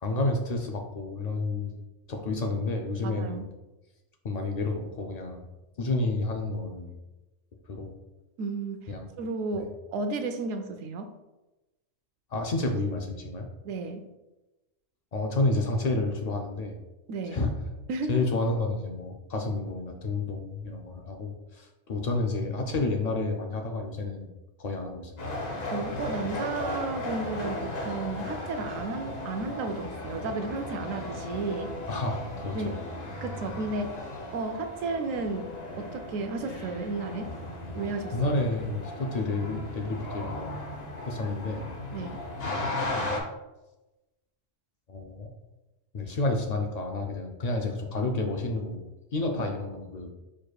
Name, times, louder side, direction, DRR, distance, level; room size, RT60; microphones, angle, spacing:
voice 1, 0.0-1.7 2.1-3.4 4.2-5.4 5.8-6.9 7.7-7.9 8.9-9.1 9.5-9.7 12.3-13.5 15.1-16.7 17.2-17.5 18.1-24.3 24.6-25.4 31.9-32.8 38.1-40.6 41.0-41.6 42.4-42.7 44.9-45.3 45.9-48.9 49.1-50.1, left 2 dB, 80° left, 2 dB, 0.3 m, -30 dB
voice 2, 3.0-3.4 8.4-8.9 9.2-11.1 13.6-14.0 17.1-17.4 17.9-18.3 25.7-31.7 32.5-32.8 33.2-34.0 34.3-37.3 37.7-38.2 41.9-42.2, right 3 dB, 90° right, 7 dB, 1.0 m, -33 dB
sound 1, 25.2-43.2, left 1 dB, 55° left, 1.0 m, -36 dB
4.8 x 4.5 x 2.3 m, 1.0 s
omnidirectional pair, 1.3 m